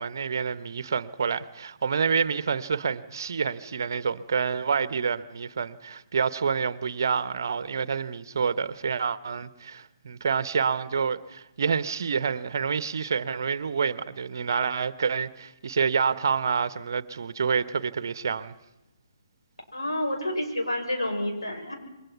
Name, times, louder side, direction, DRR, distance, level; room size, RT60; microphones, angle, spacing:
voice 1, 0.0-18.5, right 6 dB, 55° right, 1.1 m, -28 dB
voice 2, 19.7-21.7, left 1 dB, 80° left, 6.5 m, -29 dB
27.5 x 23.0 x 5.9 m
figure-of-eight pair, 135°, 2 cm